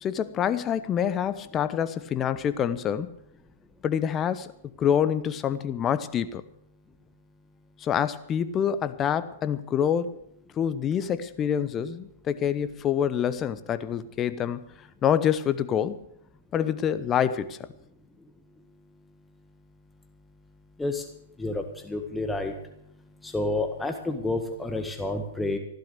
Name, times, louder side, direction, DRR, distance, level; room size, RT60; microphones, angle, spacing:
voice 1, 0.0-3.1 3.8-4.5 4.8-6.4 7.8-10.2 10.6-14.7 15.0-16.0 16.5-17.6, left 9 dB, 25° left, 13 dB, 1.0 m, -26 dB
voice 2, 21.4-22.5 23.2-25.6, left 2 dB, 5° left, 5 dB, 1.7 m, -29 dB
15.0 x 12.0 x 6.8 m, 0.72 s
hypercardioid pair, 115°, 0 cm